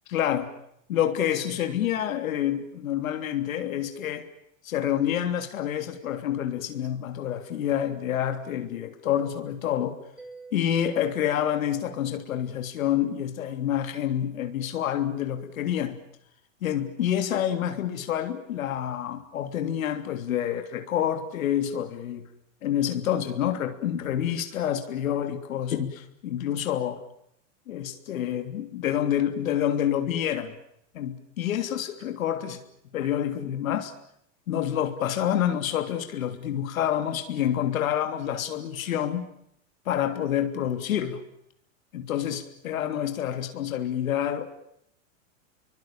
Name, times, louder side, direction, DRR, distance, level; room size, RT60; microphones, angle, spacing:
voice 1, 0.1-0.5 0.9-4.2 4.6-10.0 10.5-16.0 16.6-22.3 22.6-25.9 26.2-27.0 27.7-30.6 30.9-32.6 32.9-33.9 34.5-39.3 39.8-41.2 41.9-44.5, left 10 dB, 90° left, 7 dB, 3.2 m, -28 dB
Mallet percussion, 10.2-13.6, right 3 dB, 5° right, 3.1 m, -50 dB
29.0 x 24.0 x 7.3 m, 0.74 s
supercardioid pair, 175°, 40 cm